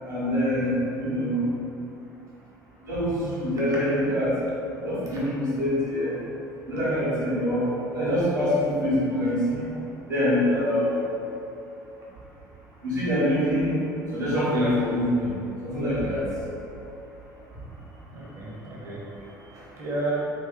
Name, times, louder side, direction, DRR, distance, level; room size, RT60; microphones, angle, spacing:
voice 1, 0.0-1.4 2.8-4.3 4.8-6.2 6.7-9.6 10.1-11.0 12.8-13.8 14.1-15.3 15.6-16.3, left 1 dB, 85° right, -13 dB, 1.4 m, -25 dB
voice 2, 18.1-19.0 19.5-20.2, right 2 dB, 30° right, -6 dB, 0.8 m, -32 dB
3.0 x 3.0 x 3.6 m, 2.8 s
figure-of-eight pair, 60°, 10 cm